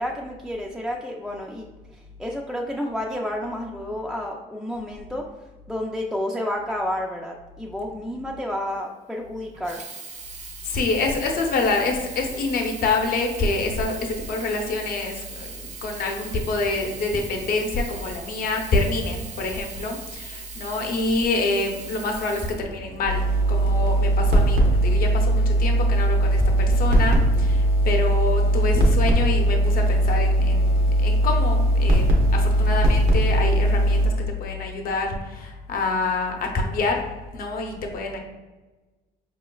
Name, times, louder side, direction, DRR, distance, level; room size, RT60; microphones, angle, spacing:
voice 1, 0.0-1.7 2.2-5.2 5.7-9.8, left 1 dB, ahead, -2 dB, 0.3 m, -30 dB
Sink (filling or washing), 9.5-23.3 24.1-24.2, right 5 dB, 45° right, 0.6 m, -40 dB
voice 2, 10.7-23.2 23.5-34.1 34.4-37.0 37.3-38.2, left 3 dB, 60° left, 2 dB, 0.8 m, -26 dB
sound 1, 23.1-34.1, right 1 dB, 85° right, 0.9 m, -19 dB
4.8 x 3.1 x 2.3 m, 1.2 s
cardioid pair, 110°, 17 cm